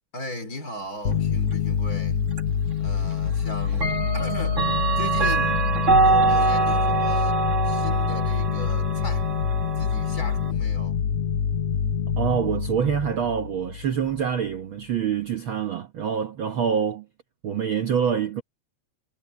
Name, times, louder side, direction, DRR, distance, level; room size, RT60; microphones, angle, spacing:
voice 1, 0.1-2.3 2.8-4.7 5.0-5.7 6.0-9.3 9.8-11.1, left 1 dB, 30° left, 4.0 m, -38 dB
sound 1, 1.0-14.2, left 8 dB, 65° left, 2.1 m, -26 dB
Clock, 2.4-2.5 3.7-10.5, right 4 dB, 35° right, 1.2 m, -24 dB
voice 2, 12.2-17.1 17.4-18.4, right 7 dB, 55° right, 1.5 m, -25 dB
omnidirectional pair, 3.3 m